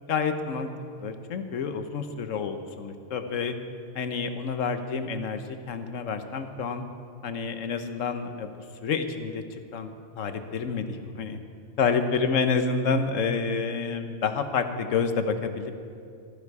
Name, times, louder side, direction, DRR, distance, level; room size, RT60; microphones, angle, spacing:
voice 1, 0.1-0.7 1.0-3.6 3.9-6.8 7.2-8.5 8.8-9.4 9.7-11.4 11.8-15.7, left 5 dB, 80° left, 8 dB, 1.3 m, -28 dB
15.0 x 14.5 x 4.8 m, 2.4 s
omnidirectional pair, 1.3 m